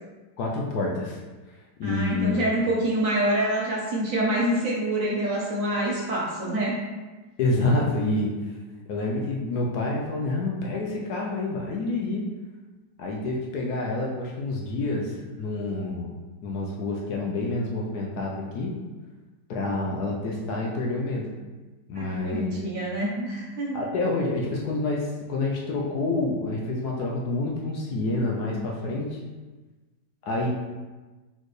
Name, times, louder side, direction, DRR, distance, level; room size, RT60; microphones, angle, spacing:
voice 1, 0.4-1.2 1.8-2.4 7.4-8.3 8.9-12.3 13.0-16.1 16.4-18.7 19.5-21.3 21.9-22.5 23.7-29.2 30.2-30.5, left 2 dB, 65° left, -1 dB, 1.0 m, -28 dB
voice 2, 1.8-6.8 21.9-23.8, right 1 dB, 55° right, -4 dB, 1.1 m, -26 dB
4.2 x 3.8 x 3.2 m, 1.2 s
omnidirectional pair, 2.1 m